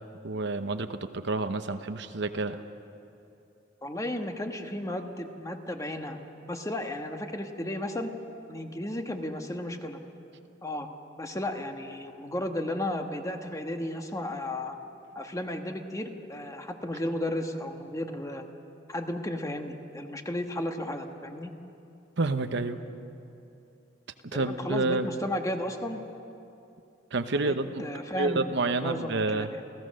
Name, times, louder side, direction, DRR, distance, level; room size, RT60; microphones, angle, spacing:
voice 1, 0.2-2.6 22.2-22.8 24.2-25.1 27.1-27.8 28.1-29.5, right 3 dB, 70° right, 9 dB, 0.9 m, -29 dB
voice 2, 3.8-6.2 6.5-8.1 8.5-10.0 10.6-10.9 11.2-14.8 15.1-18.4 18.9-21.5 24.3-26.0 27.3-29.5, left 1 dB, 20° left, 5 dB, 1.3 m, -34 dB
28.5 x 16.0 x 6.5 m, 2.7 s
head